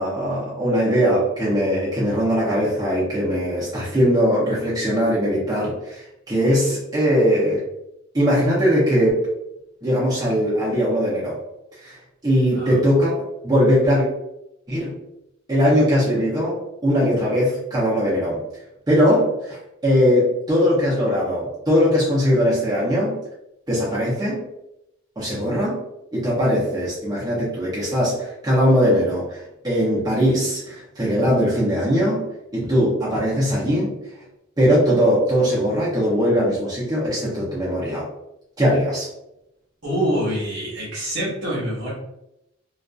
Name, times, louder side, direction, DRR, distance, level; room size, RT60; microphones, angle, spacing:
voice 1, 0.0-7.6 8.1-9.2 9.8-11.4 11.8-12.0 12.2-13.1 13.4-14.1 14.7-15.0 15.5-18.4 18.9-19.6 19.8-23.2 23.7-24.5 25.2-25.8 26.1-34.0 34.6-38.0 38.6-39.1, equal, 20° right, -9 dB, 0.6 m, -20 dB
voice 2, 12.5-12.9 39.8-41.9, equal, 60° right, -5 dB, 1.0 m, -25 dB
2.4 x 2.4 x 2.3 m, 0.87 s
head